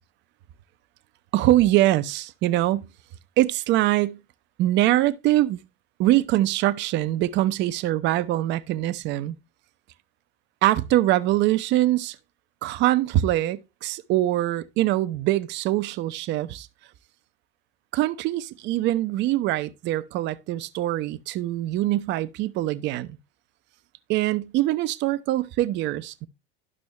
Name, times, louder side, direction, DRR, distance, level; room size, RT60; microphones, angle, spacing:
voice 1, 1.3-2.9 3.4-4.2 4.6-5.6 6.0-9.4 10.6-12.2 12.6-16.7 17.9-23.2 24.1-26.3, right 15 dB, 35° right, 0.6 m, -23 dB
11.0 x 6.1 x 3.0 m
figure-of-eight pair, 75°, 31 cm